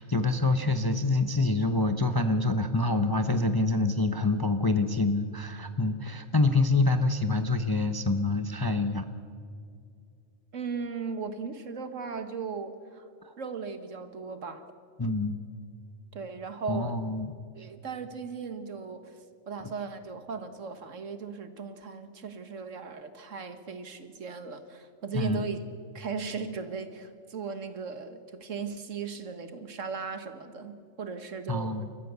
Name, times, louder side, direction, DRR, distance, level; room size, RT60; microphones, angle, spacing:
voice 1, 0.0-9.0 13.2-13.3 15.0-15.4 16.7-17.3 25.1-25.4 31.5-31.9, left 2 dB, 20° left, 8 dB, 0.7 m, -26 dB
voice 2, 10.5-13.1 13.4-14.7 16.1-16.9 17.5-25.6 25.9-31.7, right 5 dB, 70° right, 10 dB, 1.7 m, -37 dB
30.0 x 14.5 x 6.9 m, 2.3 s
omnidirectional pair, 1.4 m